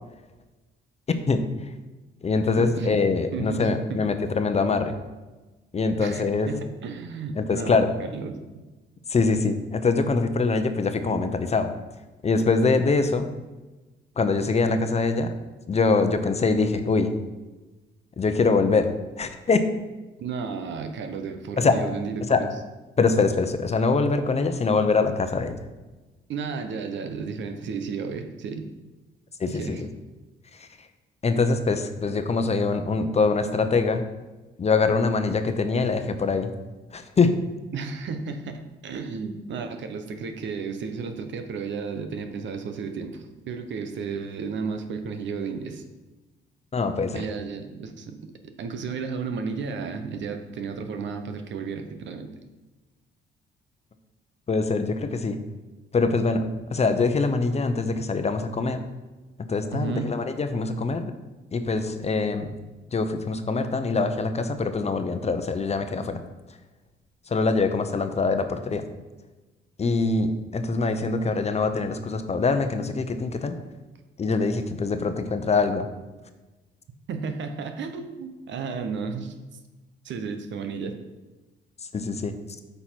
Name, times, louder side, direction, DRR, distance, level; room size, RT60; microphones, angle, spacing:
voice 1, 1.3-1.7 2.2-4.9 5.7-6.5 7.4-7.9 9.1-11.7 12.2-13.3 14.2-15.3 15.7-17.1 18.2-18.9 19.2-19.6 21.6-21.8 22.3-22.4 23.0-25.6 29.4-29.9 30.5-30.7 31.2-34.0 34.6-36.5 36.9-37.3 46.7-47.2 54.5-55.4 55.9-58.8 59.5-61.1 61.5-62.5 62.9-66.2 67.3-68.8 69.8-73.6 74.2-75.9 81.9-82.3, left 4 dB, 35° left, 8 dB, 0.8 m, -24 dB
voice 2, 2.6-3.0 3.3-4.0 6.0-8.4 20.2-22.5 26.3-28.7 29.5-29.8 37.7-45.8 47.1-52.3 59.7-60.1 77.1-79.3 80.0-81.0, right 5 dB, 70° right, 7 dB, 1.0 m, -33 dB
8.5 x 5.5 x 4.6 m, 1.2 s
cardioid pair, 90°, 20 cm